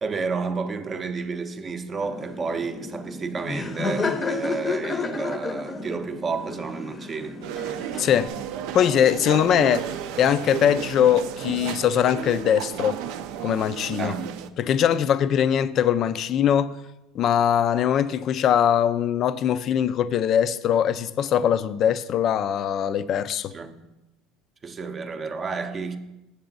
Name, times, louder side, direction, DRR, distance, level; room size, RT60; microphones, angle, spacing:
voice 1, 0.0-7.4 14.0-14.5 23.5-23.8 24.6-26.0, right 4 dB, 25° right, 0.6 m, -31 dB
Laughter, 2.0-8.3, left 3 dB, 20° left, 0.7 m, -31 dB
sound 1, 7.4-14.5, right 10 dB, 70° right, 0.4 m, -33 dB
voice 2, 8.0-8.3 8.7-9.9 10.1-13.0 13.4-14.1 14.6-16.7 17.1-23.5, left 9 dB, 45° left, 0.3 m, -21 dB
7.9 x 6.9 x 3.9 m
supercardioid pair, 125°, 0 cm